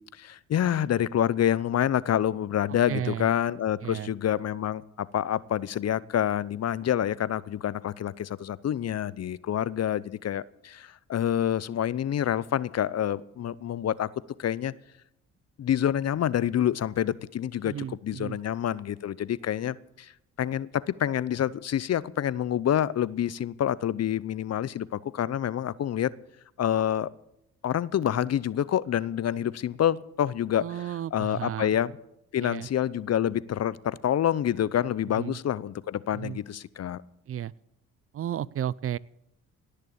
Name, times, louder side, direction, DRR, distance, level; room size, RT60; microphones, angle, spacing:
voice 1, 0.1-14.1 14.4-14.7 15.6-17.7 18.0-20.1 20.4-26.1 26.6-27.1 27.6-30.7 31.1-31.9 32.3-37.0, left 10 dB, 50° left, 20 dB, 0.7 m, -27 dB
voice 2, 2.9-3.3 3.8-4.1 17.6-18.4 30.6-31.8 32.4-32.7 35.2-35.4 36.1-36.4 37.3-37.5 38.1-39.0, right 10 dB, 40° right, 23 dB, 0.5 m, -33 dB
18.5 x 6.7 x 8.6 m, 0.82 s
supercardioid pair, 55°, 34 cm